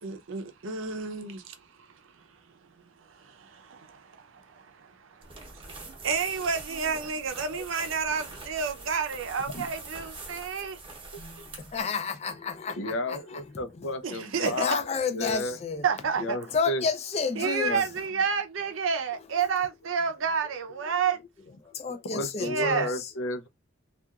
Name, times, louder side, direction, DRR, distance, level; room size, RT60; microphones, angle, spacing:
voice 1, 0.0-1.6 3.0-5.6 6.0-10.8 11.4-11.5 14.0-14.6 15.8-16.4 17.4-21.2 22.4-22.9, right 5 dB, 90° right, 0.5 m, -30 dB
sound 1, 5.2-11.8, right 3 dB, 25° right, 0.8 m, -44 dB
voice 2, 11.2-13.9 14.4-15.9 16.5-17.9 20.9-21.2 21.6-23.1, left 5 dB, 35° left, 0.4 m, -32 dB
voice 3, 12.8-14.8 15.1-15.6 16.2-16.8 17.7-17.8 22.1-23.5, left 1 dB, 85° left, 0.5 m, -32 dB
2.8 x 2.4 x 2.3 m
head